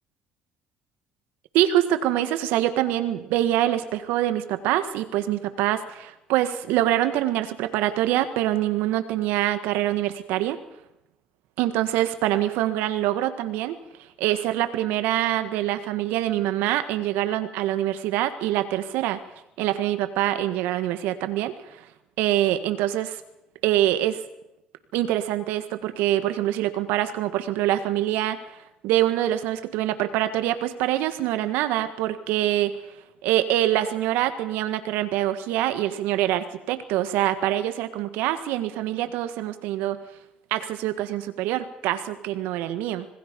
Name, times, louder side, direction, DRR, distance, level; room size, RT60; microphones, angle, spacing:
voice 1, 1.5-10.6 11.6-13.8 14.2-19.2 19.6-21.9 22.2-23.2 23.6-24.2 24.9-28.4 28.8-32.8 33.2-40.0 40.5-43.1, right 13 dB, 80° right, 11 dB, 1.7 m, -25 dB
26.0 x 20.0 x 5.3 m, 0.87 s
hypercardioid pair, 55°, 3 cm